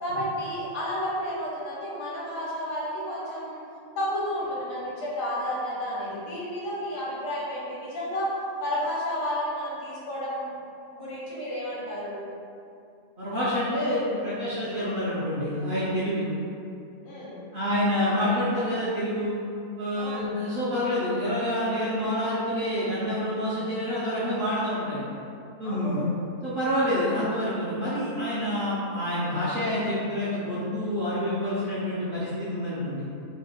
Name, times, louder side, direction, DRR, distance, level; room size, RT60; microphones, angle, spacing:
voice 1, 0.0-3.6 4.0-8.3 8.6-10.5 10.9-12.2 17.0-17.4 20.0-20.3 25.6-26.1, equal, 80° left, -6 dB, 1.2 m, -31 dB
voice 2, 13.2-16.3 17.5-19.4 19.8-25.1 25.6-26.0 26.4-33.1, left 1 dB, 60° right, -10 dB, 0.6 m, -27 dB
3.0 x 2.1 x 3.3 m, 2.6 s
omnidirectional pair, 1.4 m